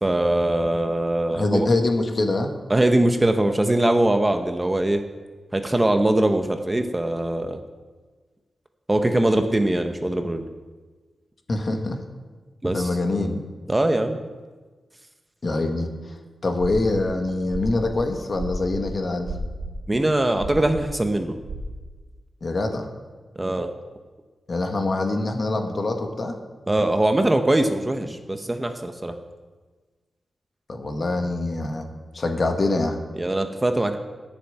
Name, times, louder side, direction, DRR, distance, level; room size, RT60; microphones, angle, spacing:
voice 1, 0.0-1.7 2.7-5.0 5.5-7.6 8.9-10.4 12.6-12.9 13.7-14.2 19.9-21.4 23.4-23.7 26.7-29.1 33.2-34.0, right 1 dB, 15° right, 6 dB, 0.8 m, -22 dB
voice 2, 1.3-2.5 11.5-12.0 12.7-13.4 15.4-15.9 16.4-19.3 22.4-22.9 24.5-26.3 30.7-31.9 32.1-33.0, left 2 dB, 45° left, 4 dB, 1.7 m, -24 dB
sound 1, 16.6-17.1 17.5-18.8 19.2-19.8 20.4-20.9 21.4-21.6, right 4 dB, 70° right, 2.3 m, -33 dB
11.0 x 7.2 x 9.0 m, 1.4 s
wide cardioid pair, 105°, 0 cm